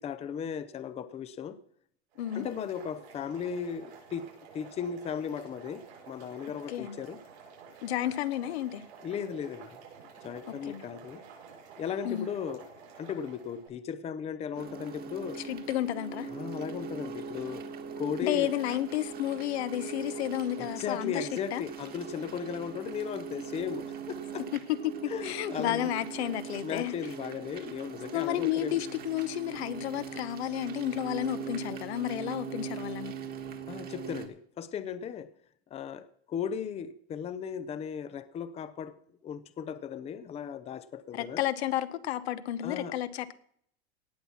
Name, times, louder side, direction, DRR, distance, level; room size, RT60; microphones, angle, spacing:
voice 1, 0.0-1.6 2.3-4.3 4.5-7.2 9.0-9.8 10.2-11.2 11.8-15.4 16.3-17.6 18.0-18.5 20.6-24.5 25.1-25.9 26.6-28.8 33.7-35.3 35.7-39.0 39.2-41.4 42.6-43.0, left 7 dB, 20° left, 14 dB, 0.6 m, -36 dB
Boiling, 2.1-13.7, right 6 dB, 90° right, 6.6 m, -51 dB
voice 2, 7.8-8.8 10.7-10.8 12.0-12.3 15.5-16.3 18.2-21.6 24.5-26.9 28.1-33.1 41.1-43.3, left 13 dB, 80° left, 13 dB, 1.0 m, -32 dB
sound 1, 14.5-34.3, right 6 dB, 30° right, 1.5 m, -41 dB
17.5 x 6.0 x 5.7 m, 0.65 s
supercardioid pair, 130°, 32 cm